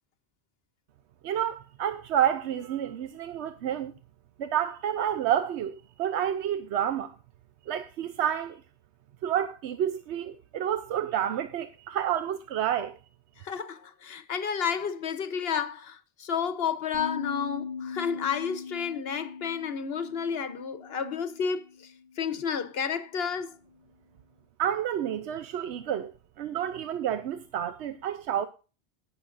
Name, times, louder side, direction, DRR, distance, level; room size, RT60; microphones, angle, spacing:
voice 1, 1.2-3.9 4.4-7.1 7.7-8.6 9.2-13.0 24.6-26.1 26.4-28.5, right 10 dB, 90° right, 0.9 m, -29 dB
voice 2, 13.4-21.6 22.2-23.6, left 7 dB, 65° left, 1.1 m, -31 dB
sound 1, 16.9-22.1, left 5 dB, 25° right, 6.2 m, -40 dB
20.0 x 7.1 x 2.6 m
omnidirectional pair, 1.1 m